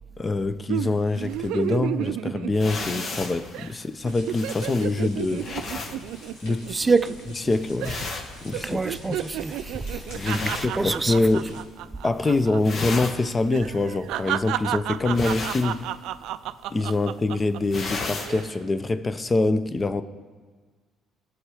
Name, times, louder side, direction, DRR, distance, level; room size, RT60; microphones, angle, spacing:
voice 1, 0.2-5.5 6.4-6.7 7.3-8.0 8.4-8.8 9.1-9.2 10.1-11.6 12.0-15.8 16.7-20.0, left 2 dB, 25° left, 0.7 m, -25 dB
sound 1, 0.7-3.2 3.5-3.7 4.0-7.5 7.8-8.2 8.5-12.6 12.9-13.0 13.5-17.6 18.1-18.5, right 13 dB, 80° right, 0.3 m, -32 dB
sound 2, 2.5-11.5 11.8-12.2 12.5-18.4, left 3 dB, 55° left, 1.2 m, -36 dB
sound 3, 4.0-11.6, left 2 dB, 85° left, 2.9 m, -46 dB
voice 2, 6.7-7.1 8.6-10.3 10.7-11.2, right 4 dB, 20° right, 0.5 m, -26 dB
18.5 x 6.4 x 4.9 m
supercardioid pair, 75°, 0 cm